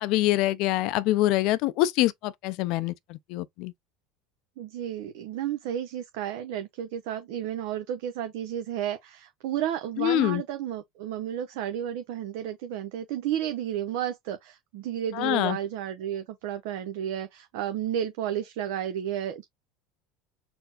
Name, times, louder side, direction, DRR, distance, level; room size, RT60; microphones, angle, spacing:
voice 1, 0.0-3.7 10.0-10.4 15.2-15.6, left 15 dB, 60° left, 0.5 m, -25 dB
voice 2, 4.6-19.5, right 10 dB, 70° right, 0.6 m, -32 dB
4.4 x 2.1 x 3.9 m
hypercardioid pair, 90°, 0 cm